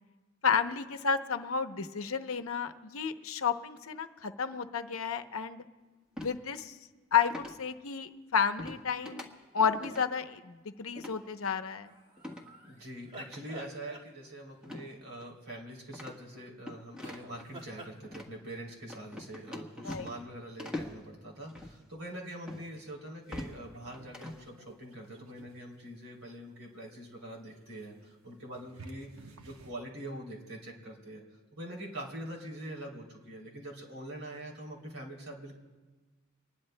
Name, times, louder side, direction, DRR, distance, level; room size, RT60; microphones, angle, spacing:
voice 1, 0.4-5.6 6.2-6.8 7.1-9.3 9.5-11.9 19.8-20.1, left 6 dB, 75° left, 8 dB, 0.7 m, -31 dB
sound 1, 6.2-6.4 7.3-7.6 8.6-8.8 9.0-9.3 9.6-10.0 11.0-11.2 12.2-12.5 13.3-13.4 14.6-14.9 15.2-15.3 15.9-17.4 18.0-18.3 18.9-20.3 20.6-21.0 21.5-21.7 22.5-22.6 23.1-23.6 23.9-24.4, left 1 dB, 5° right, 1.3 m, -42 dB
sound 2, 11.8-14.6 17.0-18.0, right 1 dB, 35° right, 1.8 m, -49 dB
voice 2, 12.6-31.2 31.5-35.6, right 1 dB, 70° right, -1 dB, 3.1 m, -44 dB
sound 3, 23.3-29.8, right 2 dB, 90° right, 1.0 m, -56 dB
25.5 x 20.5 x 2.2 m, 1.3 s
head